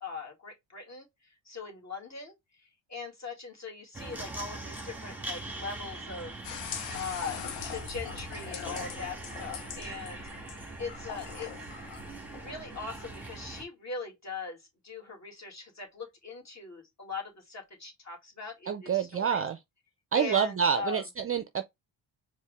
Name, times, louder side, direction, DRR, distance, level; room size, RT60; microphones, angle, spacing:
voice 1, 0.0-1.1 1.5-2.3 2.9-6.4 6.9-7.4 7.7-10.2 10.8-11.7 12.4-19.4 20.1-21.0, left 4 dB, 35° left, 2.2 m, -40 dB
sound 1, 3.9-13.6, right 2 dB, 5° right, 1.6 m, -42 dB
sound 2, 6.4-13.6, left 8 dB, 80° left, 0.9 m, -42 dB
voice 2, 18.7-19.6 20.1-21.6, right 7 dB, 30° right, 0.5 m, -27 dB
4.5 x 2.6 x 3.3 m
hypercardioid pair, 55°, 48 cm